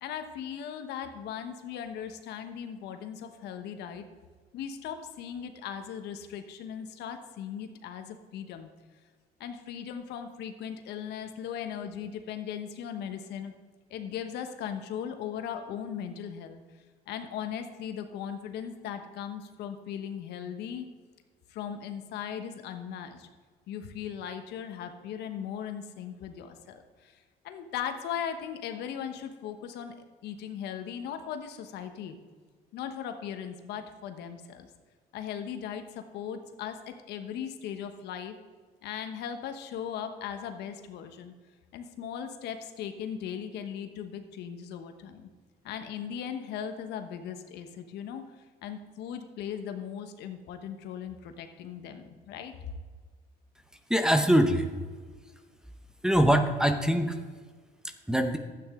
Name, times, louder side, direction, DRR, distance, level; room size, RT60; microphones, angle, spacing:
voice 1, 0.0-4.0 4.5-8.7 9.4-13.5 13.9-16.6 17.1-20.9 21.5-23.3 23.7-29.9 30.2-32.2 32.7-34.7 35.1-38.3 38.8-41.3 41.7-45.3 45.6-48.2 48.6-52.5, left 8 dB, 80° left, 7 dB, 1.1 m, -38 dB
voice 2, 53.9-54.7 56.0-57.2 58.1-58.4, equal, 5° right, 7 dB, 0.8 m, -23 dB
12.0 x 8.8 x 3.7 m, 1.5 s
cardioid pair, 110°, 17 cm